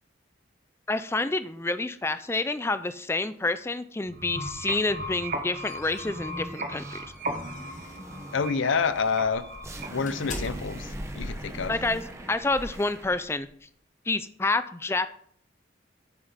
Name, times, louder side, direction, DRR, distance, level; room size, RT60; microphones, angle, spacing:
voice 1, 0.9-7.0 11.7-13.5 14.1-15.1, left 3 dB, 15° left, 13 dB, 0.3 m, -28 dB
sound 1, 4.1-10.9, right 1 dB, 45° right, 1.0 m, -37 dB
sound 2, 5.2-8.1 8.6-8.8 9.2-13.5, left 1 dB, 40° left, 1.4 m, -41 dB
sound 3, 5.9-13.3, right 1 dB, 15° right, 0.9 m, -42 dB
voice 2, 8.3-9.5 9.9-11.7, left 5 dB, 80° left, 14 dB, 0.6 m, -27 dB
9.1 x 6.7 x 4.1 m, 0.64 s
head